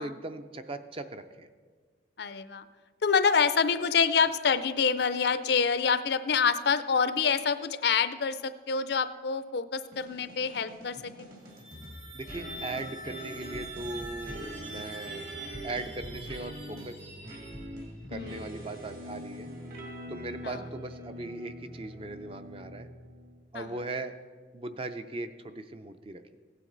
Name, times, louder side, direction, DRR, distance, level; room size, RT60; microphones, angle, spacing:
voice 1, 0.0-1.5 12.1-17.0 18.1-19.5 20.1-22.9 23.5-24.2 24.5-26.2, right 2 dB, 30° right, 9 dB, 0.5 m, -39 dB
voice 2, 2.2-2.6 3.0-11.3 18.1-18.6 20.4-20.6 23.5-23.7, left 6 dB, 60° left, 13 dB, 0.5 m, -27 dB
sound 1, 9.9-23.4, equal, 50° right, 1.9 m, -44 dB
sound 2, 11.4-18.0, right 1 dB, 85° right, 2.9 m, -45 dB
16.0 x 9.1 x 3.9 m, 1.5 s
head